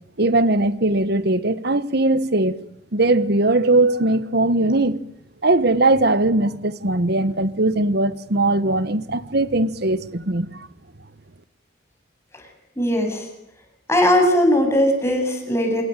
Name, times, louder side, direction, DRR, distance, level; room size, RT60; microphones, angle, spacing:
voice 1, 0.2-2.5 2.9-5.0 5.4-10.7, right 2 dB, 55° right, 1.4 m, -20 dB
voice 2, 12.8-13.2 13.9-15.8, left 1 dB, 15° left, 8.0 m, -19 dB
27.0 x 21.5 x 9.3 m
head